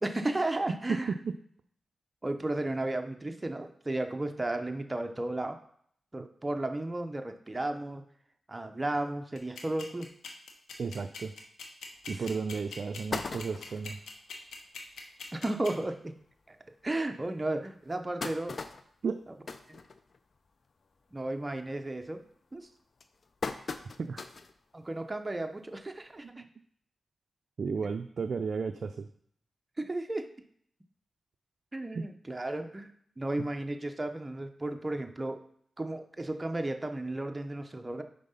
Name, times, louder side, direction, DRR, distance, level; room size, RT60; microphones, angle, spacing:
voice 1, 0.0-1.1 2.2-5.6 6.1-8.0 8.5-10.1 12.1-12.2 15.3-16.1 16.5-16.6 16.8-18.5 19.7-19.8 21.1-22.2 22.5-22.7 24.7-26.4 27.8-27.9 29.8-30.3 31.7-32.9 33.2-35.4 35.8-38.0, right 2 dB, 25° right, 6 dB, 0.7 m, -34 dB
voice 2, 0.9-1.3 10.8-11.3 12.1-14.0 19.0-19.2 24.0-24.3 26.2-26.4 27.6-29.1 31.9-32.0 33.4-33.5, right 5 dB, 65° right, 7 dB, 0.3 m, -33 dB
sound 1, 9.3-15.7, left 5 dB, 90° left, 0.9 m, -42 dB
sound 2, 12.0-12.1 12.6-12.7 12.9-13.9 14.5-14.6 14.9-15.0 15.3-15.5 16.2-16.3 16.8-16.9 17.6-20.5 20.9-21.2 21.5-21.9 22.6-24.6 25.0-25.1 26.3-26.4, left 4 dB, 60° left, 0.5 m, -39 dB
5.2 x 3.6 x 5.5 m, 0.64 s
cardioid pair, 55°, 0 cm